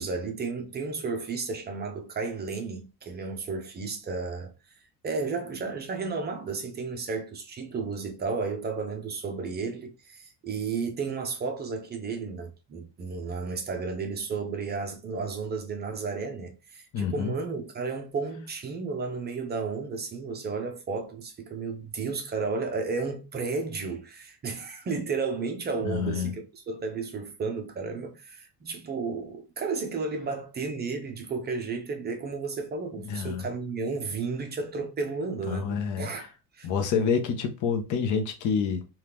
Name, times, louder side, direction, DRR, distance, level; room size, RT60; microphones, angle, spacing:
voice 1, 0.0-4.5 5.0-36.7, right 4 dB, 25° right, 0.5 m, -33 dB
voice 2, 16.9-17.3 25.8-26.4 33.0-33.5 35.5-36.3 36.6-38.9, left 6 dB, 50° left, 0.7 m, -28 dB
2.8 x 2.4 x 3.3 m
cardioid pair, 150°, 39 cm